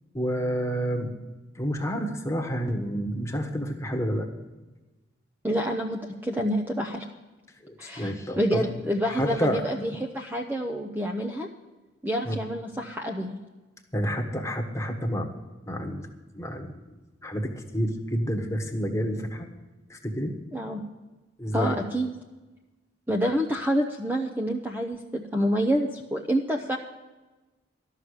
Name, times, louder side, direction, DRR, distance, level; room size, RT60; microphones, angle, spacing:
voice 1, 0.1-1.1 1.5-4.3 7.6-8.7 9.1-9.6 12.2-12.4 13.9-15.3 15.7-16.1 16.3-16.7 17.2-19.5 19.9-20.4 21.4-21.7, equal, 15° left, 3 dB, 1.3 m, -29 dB
voice 2, 5.4-7.1 7.8-11.5 12.0-13.4 20.5-20.8 21.5-22.1 23.1-26.8, equal, 10° right, 3 dB, 0.7 m, -28 dB
13.0 x 6.5 x 9.8 m, 1.2 s
head